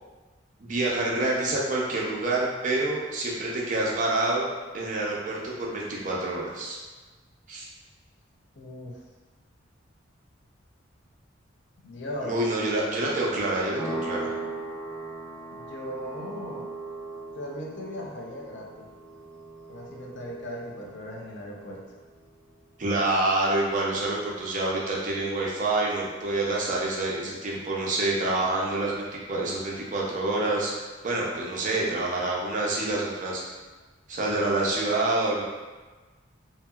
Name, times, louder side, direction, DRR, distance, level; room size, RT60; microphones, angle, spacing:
voice 1, 0.6-4.5 4.7-6.8 7.5-7.7 12.2-14.3 22.8-33.4 34.1-35.4, right 2 dB, 40° right, -4 dB, 0.5 m, -27 dB
voice 2, 8.6-9.0 11.8-12.4 15.5-16.7 17.3-18.9 19.7-21.8, equal, 65° left, -1 dB, 0.5 m, -38 dB
sound 1, 13.8-22.1, right 2 dB, 5° left, 0.6 m, -39 dB
2.8 x 2.6 x 2.3 m, 1.3 s
head